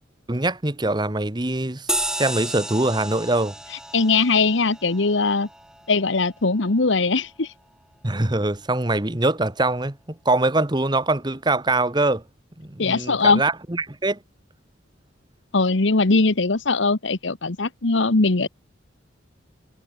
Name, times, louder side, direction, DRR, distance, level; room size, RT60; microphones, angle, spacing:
voice 1, 0.3-1.9 2.1-3.5 8.0-12.2 12.6-14.2, right 2 dB, 20° right, 1.2 m, -23 dB
sound 1, 1.9-6.8, right 1 dB, 5° right, 5.7 m, -33 dB
voice 2, 3.9-5.5 5.9-7.5 12.8-13.4 15.5-18.5, left 3 dB, 75° left, 1.2 m, -20 dB
head